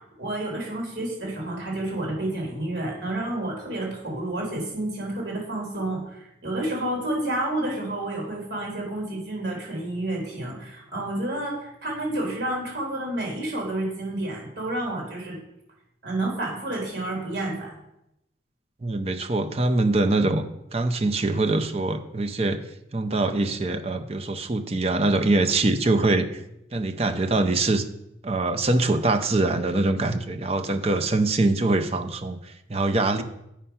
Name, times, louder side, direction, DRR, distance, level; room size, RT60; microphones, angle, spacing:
voice 1, 0.0-15.4 16.0-17.7, right 1 dB, 60° right, -2 dB, 3.6 m, -30 dB
voice 2, 18.8-20.4 20.7-22.6 22.9-26.4 26.7-27.8 28.2-33.2, right 2 dB, 35° right, 7 dB, 0.6 m, -23 dB
8.6 x 5.6 x 5.6 m, 0.84 s
head